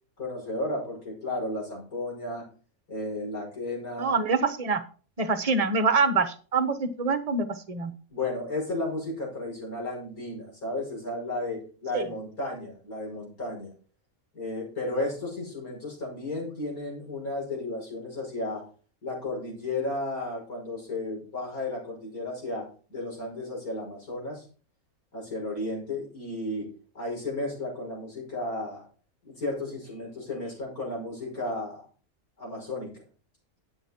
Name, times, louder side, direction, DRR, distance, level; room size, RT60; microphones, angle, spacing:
voice 1, 0.2-2.5 2.9-4.2 8.1-13.7 14.3-18.6 19.0-24.5 25.1-26.7 26.9-28.9 29.2-31.8 32.4-33.0, left 2 dB, 75° left, -2 dB, 6.1 m, -33 dB
voice 2, 4.0-4.8 5.2-7.9 11.9-12.1, right 4 dB, 30° right, 10 dB, 1.0 m, -25 dB
11.0 x 7.9 x 4.4 m, 0.39 s
omnidirectional pair, 1.5 m